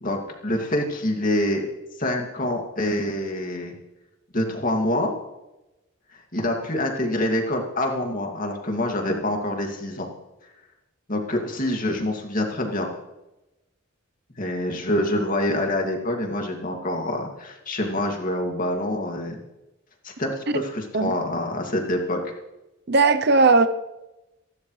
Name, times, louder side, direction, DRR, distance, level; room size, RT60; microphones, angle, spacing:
voice 1, 0.0-1.7 2.0-3.7 4.3-5.1 6.3-10.1 11.1-12.9 14.4-19.4 20.0-22.2, left 1 dB, 40° left, 2 dB, 2.4 m, -26 dB
voice 2, 22.9-23.7, right 3 dB, 50° right, 10 dB, 0.7 m, -17 dB
27.0 x 12.5 x 3.3 m, 0.97 s
head